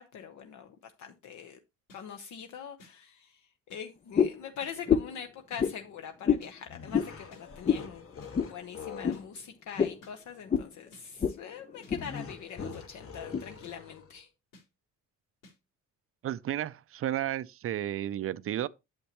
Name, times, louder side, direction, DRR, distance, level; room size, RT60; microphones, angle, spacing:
voice 1, 0.0-1.6 1.9-8.1 8.4-14.3, left 7 dB, 65° left, 0.9 m, -43 dB
sound 1, 1.9-2.0 2.8-2.9 3.7-3.8 4.6-4.7 5.5-5.6 6.4-6.5 7.3-7.4 8.2-8.3 9.1-9.2 10.0-10.1 10.9-11.0 11.8-11.9 12.7-12.8 13.6-13.7 14.5-14.6 15.4-15.5, left 1 dB, 90° left, 4.0 m, -55 dB
sound 2, 4.1-4.4 4.9-5.2 5.6-5.8 6.2-6.5 6.9-7.1 7.6-7.9 8.3-8.5 9.0-9.2 9.8-10.0 10.5-10.7 11.2-11.4 11.7-12.0 12.6-12.7 13.3-13.4, left 7 dB, 25° left, 0.4 m, -26 dB
sound 3, 6.7-9.3 11.9-14.2, left 5 dB, 45° left, 1.4 m, -44 dB
voice 2, 16.2-18.7, right 12 dB, 45° right, 0.4 m, -32 dB
8.6 x 7.3 x 2.9 m
cardioid pair, 145°, 31 cm